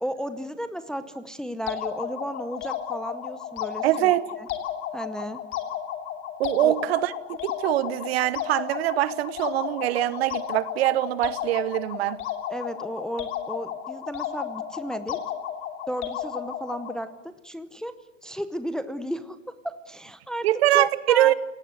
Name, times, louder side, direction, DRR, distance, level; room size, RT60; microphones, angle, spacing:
voice 1, 0.0-4.5 4.9-5.4 6.6-6.7 12.5-15.2 15.9-17.9 18.2-20.5 20.7-21.3, equal, ahead, 11 dB, 0.8 m, -33 dB
sound 1, 1.7-17.0, left 10 dB, 30° left, 2.8 m, -34 dB
voice 2, 3.8-4.3 6.4-7.1 7.4-12.2 20.4-21.3, right 15 dB, 55° right, 17 dB, 1.1 m, -23 dB
27.5 x 18.0 x 8.1 m, 0.99 s
hypercardioid pair, 125°, 38 cm